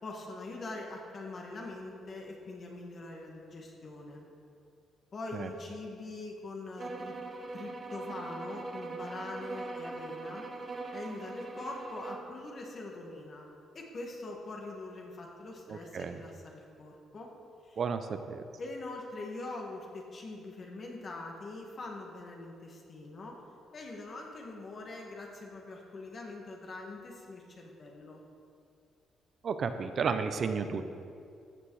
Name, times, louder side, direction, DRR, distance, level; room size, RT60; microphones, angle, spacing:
voice 1, 0.0-4.2 5.1-7.2 7.5-10.4 10.9-13.5 13.7-17.3 17.6-17.8 18.6-23.4 23.7-28.2, left 2 dB, 45° left, 0 dB, 1.8 m, -43 dB
sound 1, 6.8-12.3, right 3 dB, 35° right, 1.2 m, -41 dB
voice 2, 15.7-16.2 17.8-18.4 29.4-30.9, right 5 dB, 55° right, 9 dB, 0.7 m, -33 dB
15.0 x 6.4 x 4.8 m, 2.4 s
cardioid pair, 90°, 0 cm